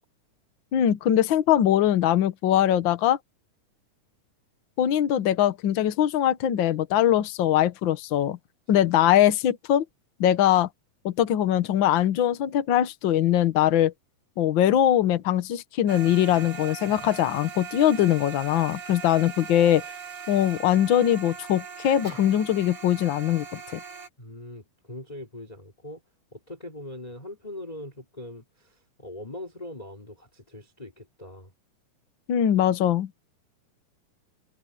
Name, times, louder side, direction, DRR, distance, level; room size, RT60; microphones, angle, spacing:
voice 1, 0.7-3.2 4.8-8.4 8.7-9.8 10.2-10.7 11.0-13.9 14.4-19.8 20.3-23.8 32.3-33.1, left 11 dB, 80° left, 1.0 m, -22 dB
sound 1, 15.9-24.1, right 7 dB, 55° right, 5.1 m, -40 dB
voice 2, 24.2-26.0 26.3-31.5, left 1 dB, 10° left, 3.3 m, -41 dB
omnidirectional pair, 3.7 m